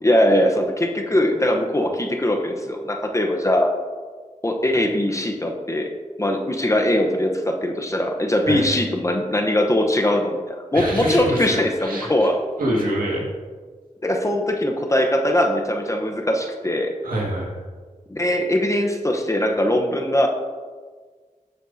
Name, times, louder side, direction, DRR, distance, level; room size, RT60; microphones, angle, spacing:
voice 1, 0.0-3.7 4.4-5.9 6.2-12.4 14.0-16.9 18.1-20.3, left 1 dB, 20° left, 2 dB, 0.9 m, -21 dB
voice 2, 10.7-12.3 12.6-13.3 17.0-17.6, right 1 dB, 90° right, -3 dB, 2.0 m, -26 dB
9.2 x 7.3 x 2.8 m, 1.5 s
wide cardioid pair, 70°, 14 cm